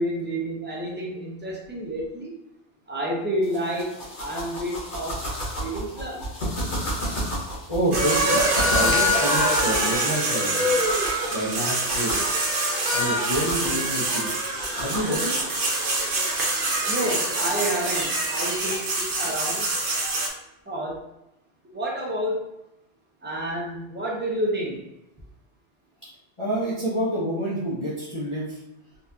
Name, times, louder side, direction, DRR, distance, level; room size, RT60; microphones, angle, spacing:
voice 1, 0.0-2.3 2.9-5.2 5.6-6.2 16.9-19.7 20.7-21.0 21.7-22.5 23.2-24.8, right 1 dB, 10° right, -3 dB, 0.6 m, -29 dB
sound 1, 3.4-15.4, equal, 70° left, 1.4 m, -34 dB
voice 2, 7.7-8.4 8.7-10.8 11.3-12.2 12.9-14.3 14.7-15.3 26.4-28.6, right 1 dB, 30° left, -9 dB, 0.7 m, -28 dB
sound 2, 7.9-20.3, right 1 dB, 55° right, 0.9 m, -24 dB
4.1 x 2.4 x 2.7 m, 0.87 s
omnidirectional pair, 1.2 m